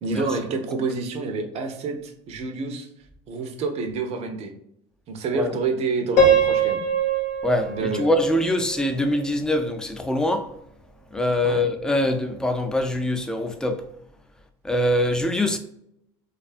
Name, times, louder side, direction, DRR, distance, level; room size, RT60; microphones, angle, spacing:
voice 1, 0.0-2.9 3.3-4.5 5.1-6.8 7.7-8.0 11.4-11.7, right 4 dB, 50° right, 0.5 m, -28 dB
Piano, 6.2-9.2, right 4 dB, 75° left, 0.8 m, -22 dB
voice 2, 7.4-10.5 11.1-13.8 14.6-15.6, left 1 dB, 5° left, 0.3 m, -23 dB
2.5 x 2.3 x 2.4 m
supercardioid pair, 95°, 13 cm